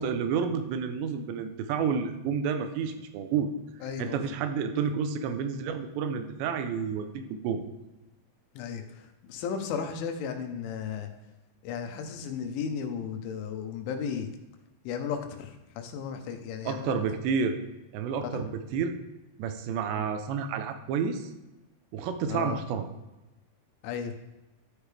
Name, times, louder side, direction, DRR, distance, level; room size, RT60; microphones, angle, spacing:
voice 1, 0.0-3.5 4.0-7.6 16.7-17.6 17.9-19.0 19.4-21.3 21.9-22.9, right 6 dB, 80° right, 7 dB, 2.8 m, -30 dB
voice 2, 3.8-4.2 8.6-11.1 11.6-14.3 14.9-16.9 18.2-18.4 22.3-22.6 23.8-24.1, left 7 dB, 90° left, 6 dB, 3.4 m, -35 dB
13.0 x 6.4 x 3.4 m, 1.0 s
omnidirectional pair, 5.4 m